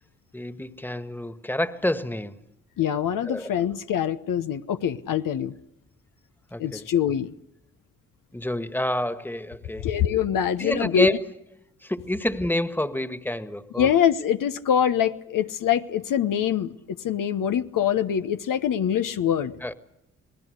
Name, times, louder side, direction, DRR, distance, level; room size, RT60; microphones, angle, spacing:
voice 1, 0.3-2.4 3.3-3.5 6.5-6.9 8.3-9.9 10.6-11.2 11.8-13.9 19.6-19.7, left 1 dB, 5° left, 11 dB, 1.7 m, -28 dB
voice 2, 2.8-5.5 6.6-7.3 9.8-11.2 13.8-19.5, left 9 dB, 70° left, 9 dB, 1.0 m, -24 dB
28.0 x 19.5 x 6.6 m, 0.84 s
supercardioid pair, 45°, 34 cm